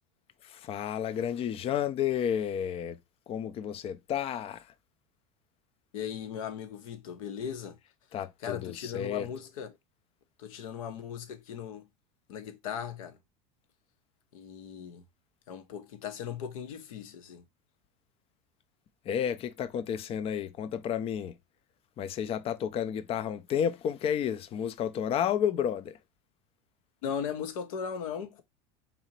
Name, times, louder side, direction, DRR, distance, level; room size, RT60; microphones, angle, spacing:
voice 1, 0.4-3.0 3.3-4.7 8.1-9.3 19.0-21.4 22.0-26.0, left 9 dB, 35° left, 0.4 m, -31 dB
voice 2, 5.9-7.8 8.4-9.7 10.4-11.9 12.3-13.2 14.3-15.0 15.5-17.4 27.0-28.4, left 8 dB, 80° left, 0.8 m, -38 dB
4.1 x 2.8 x 2.9 m
hypercardioid pair, 100°, 17 cm